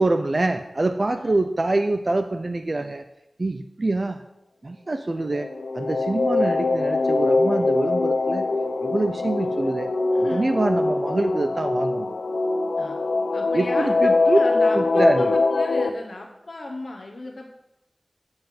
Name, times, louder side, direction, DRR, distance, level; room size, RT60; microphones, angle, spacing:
voice 1, 0.0-3.0 3.4-4.2 4.6-5.5 5.7-8.5 8.8-9.9 10.3-12.1 13.5-14.4 14.7-15.3, right 2 dB, 45° right, 8 dB, 0.5 m, -25 dB
sound 1, 5.2-15.9, left 3 dB, 90° left, 0.6 m, -23 dB
voice 2, 10.1-10.5 12.8-13.0 13.3-17.5, left 2 dB, 60° left, 1 dB, 1.0 m, -35 dB
7.9 x 7.5 x 5.3 m, 0.90 s
wide cardioid pair, 75°, 0 cm